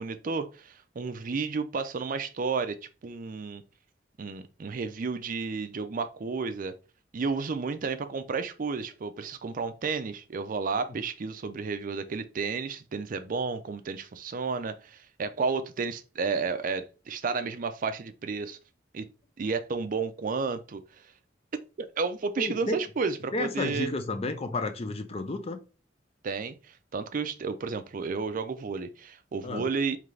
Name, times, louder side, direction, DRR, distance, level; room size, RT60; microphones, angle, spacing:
voice 1, 0.0-3.6 4.2-6.8 7.1-18.6 18.9-19.1 19.4-20.8 21.8-23.9 26.2-30.0, right 4 dB, 50° right, 0.4 m, -32 dB
voice 2, 22.4-22.8 23.3-25.6 29.4-29.7, left 2 dB, 35° left, 0.5 m, -31 dB
3.8 x 3.3 x 3.2 m
head